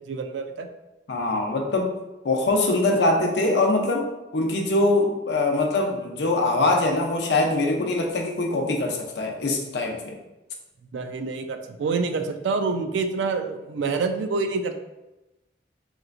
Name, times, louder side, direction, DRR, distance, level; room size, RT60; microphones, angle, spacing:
voice 1, 0.1-0.7 10.9-14.7, right 4 dB, 75° right, 7 dB, 0.3 m, -27 dB
voice 2, 1.1-1.9 2.2-4.1 4.3-10.2, left 2 dB, 65° left, 1 dB, 0.5 m, -23 dB
3.2 x 3.0 x 2.4 m, 1.0 s
head